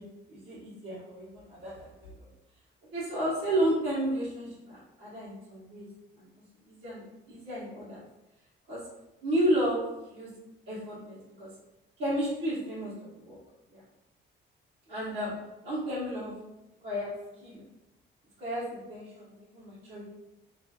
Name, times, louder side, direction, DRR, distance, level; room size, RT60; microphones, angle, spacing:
voice 1, 0.3-1.9 2.2-2.3 2.9-5.8 6.2-6.3 6.7-8.0 8.7-8.8 9.2-9.8 10.1-10.3 10.7-11.5 12.0-12.9 13.2-13.4 13.7-13.8 14.9-15.3 15.6-16.3 16.8-17.1 17.4-17.6 18.4-18.6 18.9-19.2 19.5-20.0, right 1 dB, 60° right, -12 dB, 1.2 m, -32 dB
3.1 x 2.5 x 2.4 m, 0.96 s
cardioid pair, 90°, 20 cm